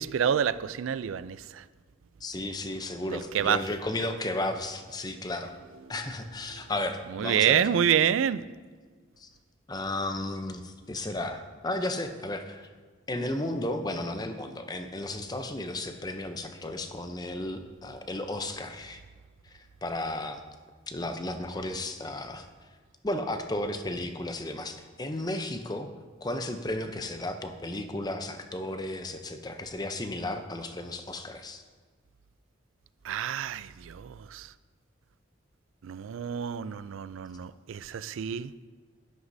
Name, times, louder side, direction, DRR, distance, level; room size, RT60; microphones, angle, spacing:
voice 1, 0.0-1.6 3.1-3.6 7.1-8.4 33.0-34.5 35.8-38.5, right 8 dB, 85° right, 16 dB, 0.4 m, -28 dB
voice 2, 2.2-5.5 5.9-7.7 9.2-9.3 9.7-12.7 13.1-19.0 19.8-20.4 20.9-22.5 23.0-25.9 26.2-31.6, left 1 dB, 20° left, 7 dB, 0.6 m, -34 dB
11.0 x 11.0 x 2.7 m, 1.5 s
head